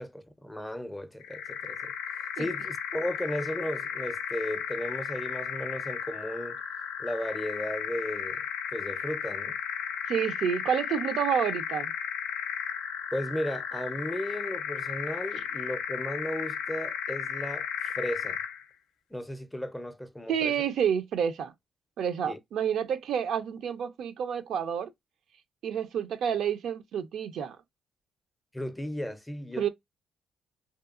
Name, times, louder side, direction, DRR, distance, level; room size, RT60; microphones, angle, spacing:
voice 1, 0.0-1.9 2.4-6.6 7.0-8.4 8.7-9.6 13.1-18.4 19.1-20.7 22.3-22.4 28.5-29.7, equal, 10° left, 0.5 m, -35 dB
sound 1, 1.2-18.6, left 8 dB, 90° left, 0.4 m, -35 dB
voice 2, 10.1-11.9 20.3-21.5 22.0-24.9 25.6-27.6 29.6-29.7, right 8 dB, 75° right, 0.4 m, -29 dB
2.7 x 2.3 x 2.3 m
cardioid pair, 90°, 0 cm